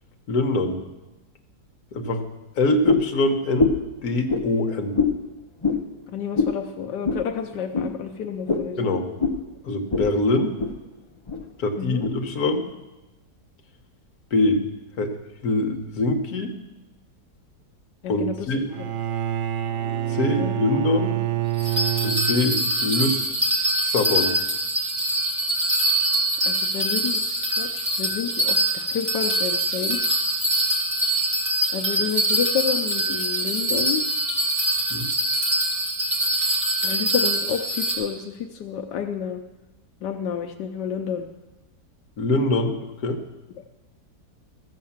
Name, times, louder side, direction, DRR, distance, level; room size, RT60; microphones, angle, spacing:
voice 1, 0.3-0.8 1.9-2.2 2.6-4.9 8.8-9.1 9.6-10.5 11.6-12.6 14.3-14.6 15.0-15.1 15.4-16.5 18.1-18.7 20.1-21.2 22.0-23.3 23.8-24.3 34.9-35.0 42.2-42.7 43.0-43.2, left 2 dB, 65° left, 4 dB, 1.6 m, -23 dB
sound 1, 2.8-3.1 3.6-3.9 4.3-4.5 4.9-5.2 5.6-5.8 6.3-6.6 7.0-7.2 7.7-7.9 8.5-8.7 9.2-9.4 9.9-10.1 10.4-10.7 11.3-11.4 12.0-12.1, left 4 dB, 30° left, 0.5 m, -22 dB
voice 2, 6.1-8.9 11.8-12.0 18.0-18.5 20.4-20.6 26.4-30.0 31.7-34.0 36.8-39.4 40.0-41.3, left 8 dB, 85° left, 4 dB, 1.3 m, -30 dB
Bowed string instrument, 18.7-22.8, right 12 dB, 70° right, 0.7 m, -27 dB
Bell, 21.6-38.0, right 1 dB, 25° right, 2.2 m, -24 dB
14.0 x 7.5 x 7.2 m, 1.1 s
omnidirectional pair, 1.8 m